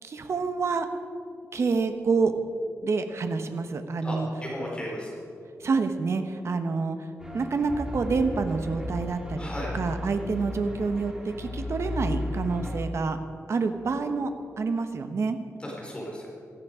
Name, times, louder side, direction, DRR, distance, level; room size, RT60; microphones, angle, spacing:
voice 1, 0.0-0.9 1.5-2.3 2.8-4.3 5.6-7.0 7.3-9.5 9.7-13.2 13.5-14.3 14.6-15.4, right 4 dB, 55° right, 7 dB, 1.1 m, -27 dB
voice 2, 4.0-5.1 9.4-9.7 15.6-16.2, equal, 20° left, -3 dB, 4.1 m, -35 dB
sound 1, 7.2-12.8, left 1 dB, 10° right, 2.2 m, -35 dB
17.5 x 14.0 x 5.0 m, 2.5 s
wide cardioid pair, 125°, 5 cm